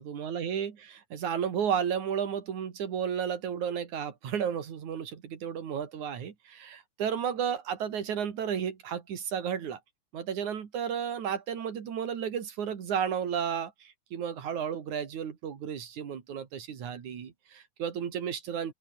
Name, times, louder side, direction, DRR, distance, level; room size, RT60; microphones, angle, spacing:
voice 1, 0.0-9.8 10.1-18.7, right 8 dB, 70° right, 3.9 m, -33 dB
open air
omnidirectional pair, 3.6 m